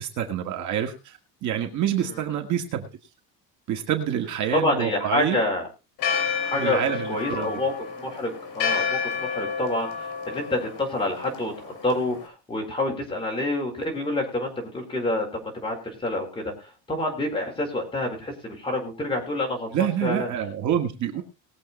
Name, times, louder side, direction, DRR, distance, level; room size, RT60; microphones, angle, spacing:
voice 1, 0.0-2.9 3.7-5.4 6.5-7.5 19.7-21.2, right 10 dB, 50° right, 4 dB, 1.9 m, -27 dB
voice 2, 4.5-5.7 6.4-6.8 7.1-19.7 20.0-20.3, left 2 dB, 15° left, 1 dB, 4.4 m, -28 dB
Church bell, 6.0-12.3, left 6 dB, 65° left, 5.3 m, -30 dB
20.5 x 7.7 x 4.2 m, 0.30 s
cardioid pair, 170°, 37 cm